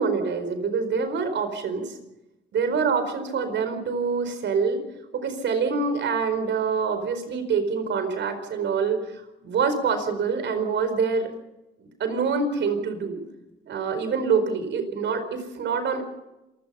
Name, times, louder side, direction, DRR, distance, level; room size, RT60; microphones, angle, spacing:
voice 1, 0.0-1.9 2.5-4.8 5.1-11.3 12.0-13.2 13.7-16.1, right 5 dB, 65° right, 9 dB, 4.7 m, -25 dB
27.0 x 17.0 x 5.7 m, 0.99 s
cardioid pair, 90°, 20 cm